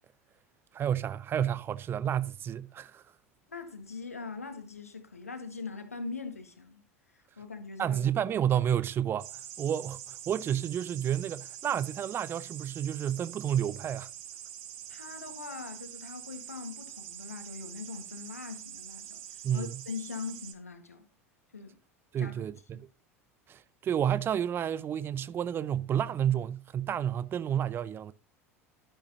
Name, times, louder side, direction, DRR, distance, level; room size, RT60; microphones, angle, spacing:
voice 1, 0.7-3.0 7.8-14.1 19.4-19.7 22.1-22.9 23.5-28.1, right 9 dB, 30° right, 0.5 m, -30 dB
voice 2, 3.5-6.8 7.4-8.0 14.9-21.1 21.5-21.8 22.2-22.3 22.7-22.8, left 4 dB, 80° left, 1.6 m, -41 dB
sound 1, 9.2-20.5, right 11 dB, 55° right, 1.6 m, -45 dB
12.5 x 9.9 x 2.8 m
figure-of-eight pair, 75°, 8 cm